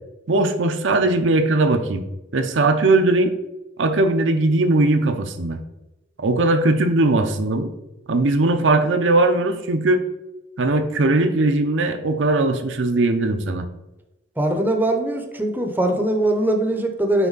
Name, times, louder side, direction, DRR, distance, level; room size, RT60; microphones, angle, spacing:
voice 1, 0.3-2.0 2.3-3.3 3.8-5.6 6.2-7.7 8.1-10.0 10.6-13.7, right 2 dB, 80° right, 6 dB, 0.7 m, -19 dB
voice 2, 14.4-17.3, right 1 dB, 10° right, 4 dB, 0.7 m, -21 dB
6.0 x 4.7 x 4.0 m, 0.96 s
head